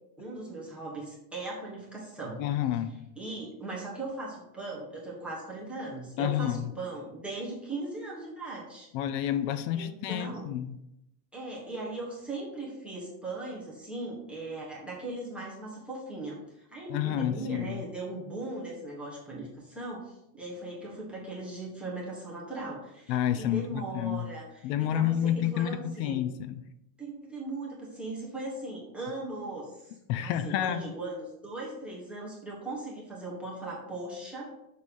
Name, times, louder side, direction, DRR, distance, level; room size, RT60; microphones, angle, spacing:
voice 1, 0.2-2.4 3.2-8.9 9.7-10.4 11.3-26.1 27.0-34.6, right 2 dB, ahead, -7 dB, 1.3 m, -39 dB
voice 2, 2.4-3.0 6.2-6.7 8.9-10.8 16.9-17.8 23.1-24.3 24.6-26.6 30.1-30.8, left 11 dB, 85° left, 11 dB, 0.7 m, -29 dB
6.6 x 3.3 x 5.4 m, 0.85 s
cardioid pair, 180°, 48 cm